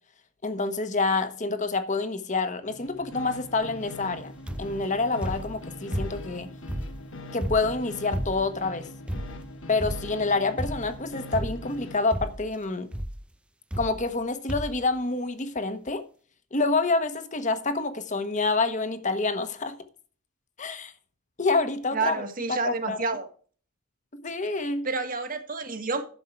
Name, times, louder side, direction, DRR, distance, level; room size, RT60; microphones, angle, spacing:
voice 1, 0.4-4.3 4.6-6.5 7.3-8.9 9.7-12.9 13.8-16.0 16.5-19.8 20.6-20.9 21.4-23.0 24.1-24.9, left 3 dB, 35° left, 1.2 m, -27 dB
sound 1, 2.6-12.2, left 2 dB, 60° left, 1.3 m, -42 dB
sound 2, 4.5-4.8 5.2-6.4 6.7-8.6 9.1-9.5 9.8-10.2 10.6-11.0 11.3-11.8 12.1-12.5 12.9-13.2 13.7-14.2 14.5-14.9 15.6-15.7 15.9-16.0, equal, 5° right, 0.6 m, -33 dB
voice 2, 21.9-23.3 24.8-26.0, right 4 dB, 40° right, 1.7 m, -29 dB
12.0 x 7.3 x 4.6 m
head